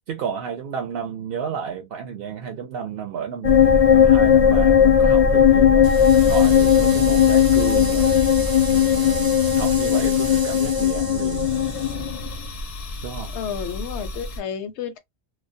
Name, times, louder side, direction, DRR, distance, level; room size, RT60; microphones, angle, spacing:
voice 1, 0.1-3.6 3.9-11.7 13.0-13.3, right 7 dB, 65° right, 0.7 m, -32 dB
sound 1, 3.4-14.4, left 8 dB, 50° left, 0.4 m, -17 dB
sound 2, 5.8-11.9, right 2 dB, 30° right, 0.4 m, -35 dB
voice 2, 13.3-15.0, left 7 dB, 80° left, 0.9 m, -31 dB
2.3 x 2.0 x 2.6 m
omnidirectional pair, 1.1 m